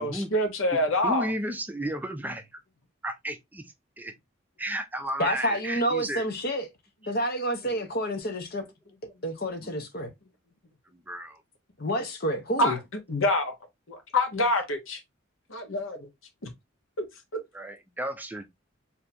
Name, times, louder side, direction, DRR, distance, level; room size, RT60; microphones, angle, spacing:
voice 1, 0.0-1.3 12.6-12.8 13.1-13.5 13.9-15.0 15.5-16.1, left 1 dB, 75° left, 1.0 m, -26 dB
voice 2, 1.0-2.5 3.0-3.6 4.0-4.1 4.6-6.2 7.0-7.1 7.6-7.9 9.6-9.7 10.9-11.4 17.5-18.4, right 1 dB, 10° right, 0.4 m, -33 dB
voice 3, 5.2-6.7 7.1-8.6 9.2-10.1 11.8-12.8, equal, 45° left, 0.8 m, -29 dB
4.2 x 2.7 x 2.6 m
head